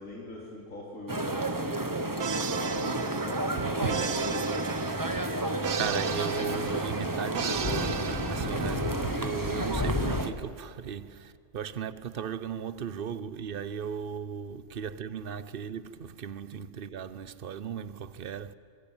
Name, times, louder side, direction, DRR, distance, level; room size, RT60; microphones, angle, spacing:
voice 1, 0.0-2.0 2.6-4.5, left 2 dB, 60° left, 4.0 m, -42 dB
sound 1, 1.1-10.3, right 1 dB, 15° right, 1.3 m, -31 dB
sound 2, 2.2-9.1, right 8 dB, 70° right, 1.5 m, -37 dB
voice 2, 3.6-4.1 5.7-18.5, right 7 dB, 45° right, 0.9 m, -36 dB
sound 3, 3.9-10.2, left 3 dB, 25° left, 0.7 m, -37 dB
27.0 x 20.5 x 9.0 m
omnidirectional pair, 1.6 m